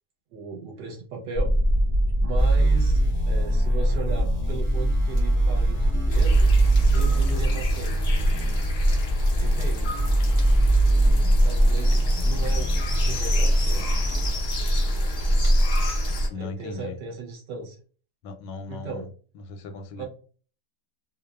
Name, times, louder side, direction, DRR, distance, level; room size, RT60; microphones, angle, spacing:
voice 1, 0.3-1.5 2.2-6.5 6.9-8.0 9.4-9.9 11.4-13.9 16.3-17.8 18.7-19.1 20.0-20.1, right 4 dB, 75° right, -1 dB, 1.2 m, -36 dB
sound 1, 1.3-10.8, equal, 45° right, 0.7 m, -25 dB
sound 2, 2.4-14.3, right 2 dB, 10° left, 0.5 m, -24 dB
sound 3, 6.1-16.3, equal, 65° left, 0.6 m, -24 dB
voice 2, 16.3-17.0 18.2-19.1 19.3-20.1, left 3 dB, 85° left, 6 dB, 1.2 m, -37 dB
3.0 x 2.0 x 2.3 m, 0.39 s
omnidirectional pair, 1.9 m